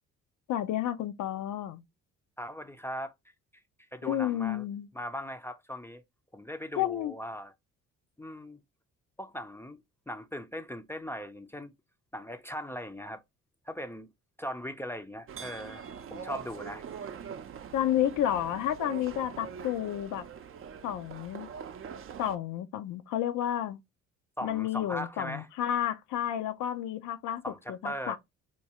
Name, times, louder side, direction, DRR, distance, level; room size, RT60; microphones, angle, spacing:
voice 1, 0.5-1.8 4.0-4.9 6.8-7.1 17.7-20.2 20.8-21.5 22.2-23.8 24.4-27.4 27.7-28.2, left 11 dB, 85° left, 0.6 m, -31 dB
voice 2, 2.4-3.1 3.9-4.7 4.9-6.0 6.3-7.5 8.2-8.6 9.2-11.7 12.1-13.2 13.7-14.1 14.4-15.8 16.1-16.9 24.4-25.5 27.4-28.2, equal, 10° left, 0.4 m, -39 dB
sound 1, 15.3-22.4, right 7 dB, 45° right, 0.5 m, -43 dB
4.5 x 2.3 x 2.8 m
cardioid pair, 90°, 30 cm